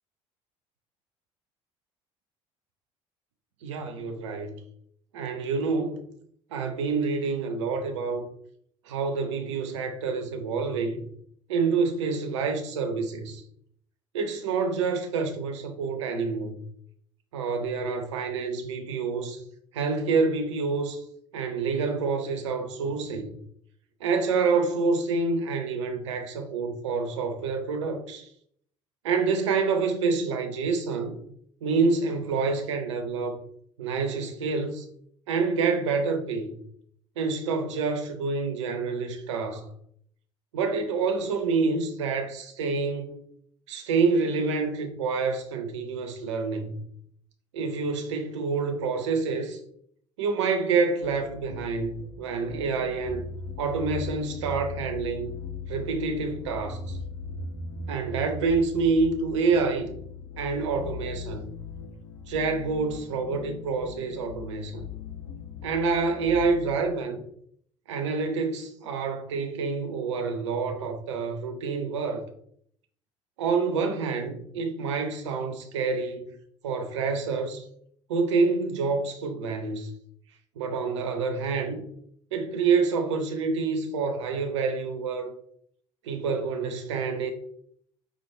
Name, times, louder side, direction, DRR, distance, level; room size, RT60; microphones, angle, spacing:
voice 1, 3.6-4.5 5.1-6.1 6.5-8.3 8.9-11.0 11.5-13.4 14.1-16.6 17.3-19.4 19.7-21.0 21.3-23.3 24.0-28.3 29.0-31.2 31.6-33.4 33.8-34.9 35.3-36.6 37.2-39.7 40.5-43.2 43.7-46.8 47.5-49.6 50.2-53.3 53.6-55.3 55.7-57.0 57.9-59.9 60.4-61.5 62.3-64.8 65.6-67.2 67.9-72.2 73.4-76.3 76.6-77.6 78.1-79.9 80.6-81.8 82.3-85.3 86.0-87.3, right 4 dB, 75° right, 0.6 m, -27 dB
sound 1, 51.0-66.8, left 4 dB, 80° left, 0.6 m, -39 dB
4.4 x 2.4 x 2.7 m
figure-of-eight pair, 60°, 15 cm